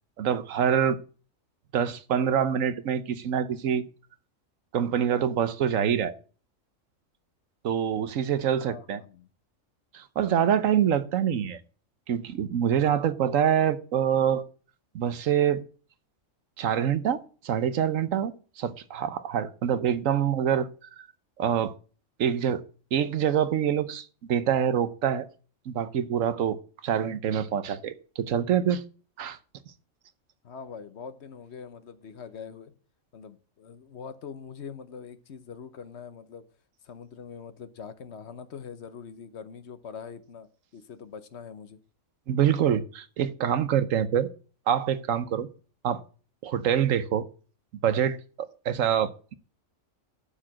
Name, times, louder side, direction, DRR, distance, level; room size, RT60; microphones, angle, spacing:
voice 1, 0.2-1.0 1.7-3.8 4.7-6.2 7.6-9.0 9.9-11.6 12.1-14.4 14.9-15.6 16.6-20.7 21.0-21.1 21.4-21.7 22.2-22.6 22.9-25.3 25.7-28.8 29.2-29.4 42.3-44.3 44.7-45.5 45.8-46.0 46.4-47.3 47.8-48.2 48.6-49.3, right 9 dB, 80° right, 1.2 m, -25 dB
voice 2, 8.7-9.3 30.4-32.7 33.1-36.4 36.8-40.5 40.7-41.8 42.4-42.5, left 6 dB, 60° left, 1.1 m, -43 dB
11.5 x 4.9 x 7.4 m
omnidirectional pair, 1.3 m